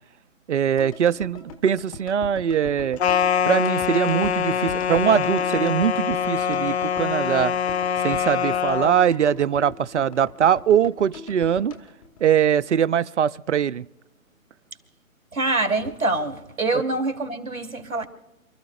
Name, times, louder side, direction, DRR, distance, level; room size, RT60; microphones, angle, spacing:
voice 1, 0.5-3.0 3.5-7.5 8.0-11.7 12.2-13.8, right 8 dB, 55° right, 0.6 m, -22 dB
sound 1, 0.8-13.0 13.2-13.3, left 4 dB, 25° left, 1.3 m, -41 dB
sound 2, 3.0-9.0, left 7 dB, 50° left, 0.4 m, -24 dB
voice 2, 15.3-18.1, right 2 dB, 80° right, 3.0 m, -25 dB
28.5 x 14.0 x 2.4 m
figure-of-eight pair, 150°, 42 cm